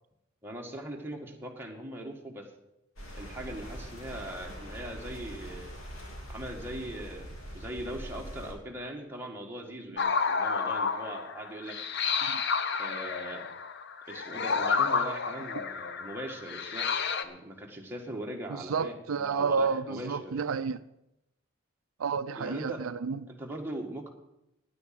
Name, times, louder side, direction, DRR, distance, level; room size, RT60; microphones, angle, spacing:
voice 1, 0.4-2.5 3.1-5.7 6.3-11.8 12.8-13.5 14.1-20.3 22.4-22.8 23.3-24.1, right 1 dB, 10° right, 0 dB, 1.8 m, -40 dB
sound 1, 3.0-8.5, equal, 90° left, 3.3 m, -43 dB
sound 2, 10.0-17.2, left 5 dB, 60° left, 0.8 m, -30 dB
voice 2, 18.5-20.8 22.0-23.2, right 5 dB, 85° right, 13 dB, 0.5 m, -31 dB
9.8 x 9.4 x 7.6 m, 0.87 s
head